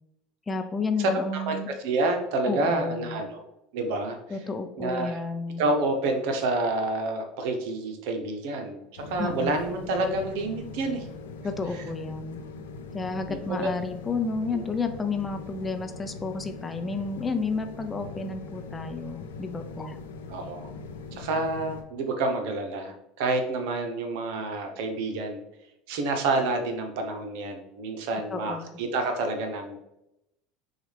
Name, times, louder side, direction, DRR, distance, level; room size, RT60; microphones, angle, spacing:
voice 1, 0.5-1.7 2.5-3.2 4.3-5.6 9.2-9.5 11.4-12.4 12.9-20.0 28.3-28.8, left 4 dB, 20° left, 7 dB, 0.5 m, -31 dB
voice 2, 1.8-3.4 3.7-4.2 4.8-5.2 5.6-11.1 13.3-13.7 20.3-20.7 21.1-25.4 25.9-29.8, right 2 dB, 70° right, 5 dB, 0.8 m, -28 dB
sound 1, 9.0-21.8, left 4 dB, 80° left, 0.5 m, -41 dB
6.1 x 2.4 x 3.3 m, 0.86 s
hypercardioid pair, 75°, 0 cm